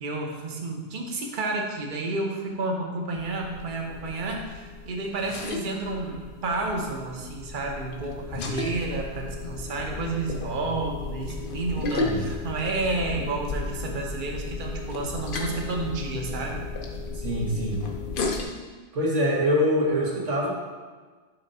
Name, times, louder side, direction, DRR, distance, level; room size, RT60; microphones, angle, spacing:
voice 1, 0.0-16.7, right 3 dB, 50° right, 0 dB, 1.0 m, -31 dB
sound 1, 3.2-18.4, left 3 dB, 55° left, 0.8 m, -34 dB
voice 2, 17.1-17.8 18.9-20.5, equal, 85° right, -3 dB, 1.6 m, -24 dB
6.0 x 3.8 x 5.3 m, 1.4 s
omnidirectional pair, 1.2 m